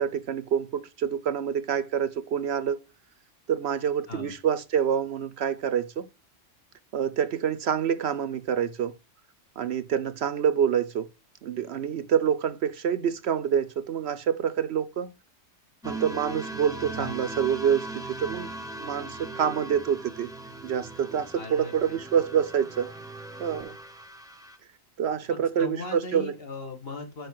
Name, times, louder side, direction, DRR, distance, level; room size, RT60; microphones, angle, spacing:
voice 1, 0.0-2.8 3.5-6.1 6.9-8.9 9.6-11.1 11.4-15.1 15.8-18.5 18.8-20.3 20.6-22.9 23.4-23.7 25.0-26.3, right 8 dB, 65° right, 0.8 m, -27 dB
sound 1, 15.8-24.6, right 2 dB, 5° right, 0.6 m, -39 dB
voice 2, 21.3-22.0 25.3-27.3, left 3 dB, 50° left, 1.6 m, -38 dB
6.2 x 5.1 x 4.6 m
omnidirectional pair, 1.3 m